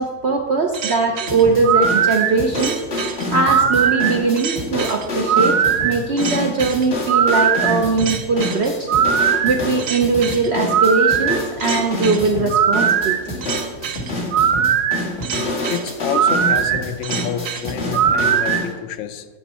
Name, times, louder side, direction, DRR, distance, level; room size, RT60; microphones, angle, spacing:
voice 1, 0.0-5.6 5.8-8.9 9.4-13.3, right 3 dB, 55° right, 4 dB, 0.8 m, -20 dB
sound 1, 0.7-18.6, right 8 dB, 85° right, 1.3 m, -20 dB
sound 2, 1.3-18.7, left 2 dB, 40° left, 2.0 m, -27 dB
voice 2, 15.7-19.3, left 8 dB, 65° left, 8 dB, 1.0 m, -28 dB
12.0 x 8.0 x 4.2 m, 1.4 s
omnidirectional pair, 1.7 m